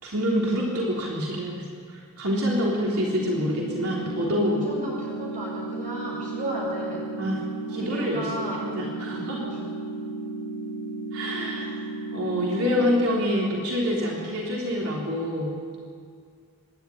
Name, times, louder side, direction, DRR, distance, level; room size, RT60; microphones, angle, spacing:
voice 1, 0.0-1.6 1.9-4.6 7.2-7.4 7.7-9.5 11.1-11.7 12.1-15.5, equal, 85° right, -4 dB, 3.5 m, -26 dB
sound 1, 3.1-13.1, right 2 dB, 80° left, 4.0 m, -34 dB
voice 2, 4.5-7.1 7.7-8.7 9.1-9.8 11.5-11.8 12.3-12.6, right 1 dB, 35° right, -3 dB, 7.4 m, -35 dB
26.0 x 11.5 x 10.0 m, 2.2 s
head